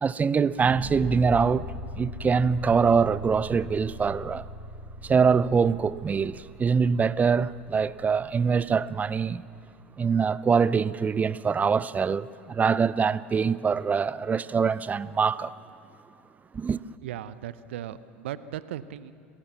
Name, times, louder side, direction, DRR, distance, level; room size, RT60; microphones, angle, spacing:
voice 1, 0.0-1.6 2.0-4.5 5.0-9.4 10.0-15.5 16.5-16.8, right 5 dB, 25° right, 0.5 m, -24 dB
sound 1, 0.6-9.6, left 1 dB, 5° left, 2.5 m, -41 dB
voice 2, 17.0-19.1, right 11 dB, 75° right, 0.7 m, -37 dB
26.5 x 15.0 x 7.2 m
hypercardioid pair, 80°, 7 cm